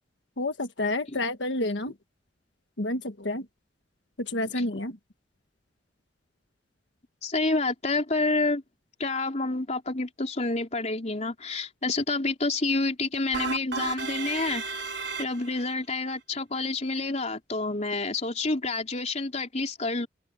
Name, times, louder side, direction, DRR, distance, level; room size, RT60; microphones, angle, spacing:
voice 1, 0.4-1.9 2.8-3.4 4.2-5.0, left 2 dB, 90° left, 1.4 m, -29 dB
voice 2, 7.2-8.6 9.0-14.6 15.2-20.1, left 3 dB, 40° left, 3.9 m, -28 dB
sound 1, 13.3-15.7, right 5 dB, 75° right, 3.5 m, -33 dB
open air
head